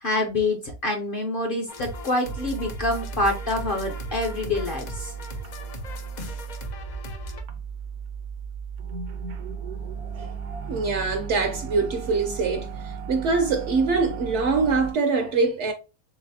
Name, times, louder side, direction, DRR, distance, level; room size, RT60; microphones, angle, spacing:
voice 1, 0.0-5.1, left 2 dB, 50° left, 0.7 m, -26 dB
sound 1, 1.7-7.4, left 2 dB, 80° left, 0.4 m, -39 dB
sound 2, 2.2-14.9, right 6 dB, 80° right, 1.2 m, -35 dB
voice 2, 10.7-15.7, right 4 dB, 65° right, 0.8 m, -24 dB
4.0 x 3.5 x 2.6 m
omnidirectional pair, 1.6 m